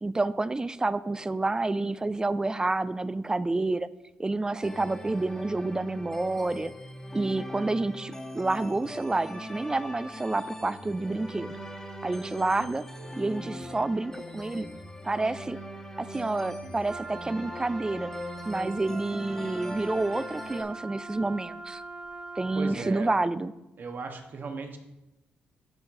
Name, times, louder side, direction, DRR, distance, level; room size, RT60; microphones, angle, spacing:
voice 1, 0.0-3.9 4.2-6.7 7.1-11.6 12.0-12.8 13.2-14.7 15.0-15.6 16.0-18.1 18.5-21.8 22.4-23.5, right 2 dB, 20° right, 17 dB, 0.4 m, -29 dB
sound 1, 4.6-20.6, equal, 10° left, 1.4 m, -41 dB
Wind instrument woodwind instrument, 16.8-22.8, right 3 dB, 35° right, 2.1 m, -42 dB
voice 2, 22.5-23.1 23.8-24.8, right 4 dB, 50° right, 5 dB, 1.2 m, -36 dB
12.5 x 4.6 x 3.7 m, 0.96 s
cardioid pair, 75°, 4 cm